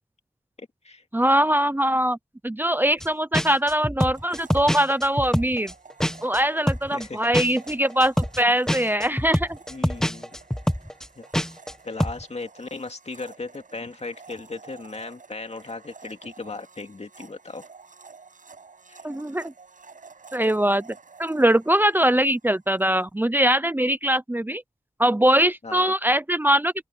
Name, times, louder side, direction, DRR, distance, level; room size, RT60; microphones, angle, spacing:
voice 1, 0.6-1.0 6.9-7.3 9.7-10.3 11.2-11.3 11.8-17.6 18.9-19.0 25.6-25.9, left 3 dB, 55° left, 2.3 m, -37 dB
voice 2, 1.1-2.2 2.4-5.7 6.2-9.6 19.0-19.5 20.3-20.8 21.2-24.6 25.0-26.7, right 1 dB, 15° right, 0.7 m, -22 dB
sound 1, 3.0-3.1 3.3-6.4 6.7-11.7 12.0-12.2, equal, 5° left, 1.2 m, -25 dB
Domestic sounds home sounds, 4.2-22.9, right 4 dB, 80° right, 7.1 m, -50 dB
open air
wide cardioid pair, 60°, 13 cm